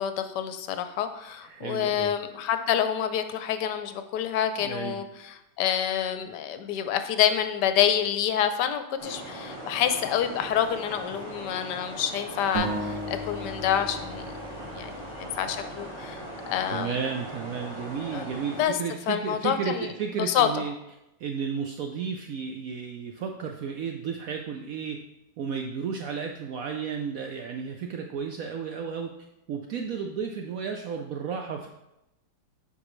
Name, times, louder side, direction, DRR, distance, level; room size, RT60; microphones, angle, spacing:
voice 1, 0.0-14.4 14.7-17.0 18.1-18.8 19.1-19.9 20.2-20.6, left 9 dB, 75° left, 9 dB, 1.1 m, -27 dB
voice 2, 1.4-2.1 4.6-5.0 16.7-20.7 21.2-25.0 25.4-29.1 29.5-31.7, right 6 dB, 85° right, 3 dB, 0.7 m, -33 dB
sound 1, 9.0-18.6, right 1 dB, 20° right, 1.1 m, -40 dB
sound 2, 12.5-16.2, right 2 dB, 60° right, 1.3 m, -36 dB
8.2 x 5.2 x 3.1 m, 0.90 s
omnidirectional pair, 2.0 m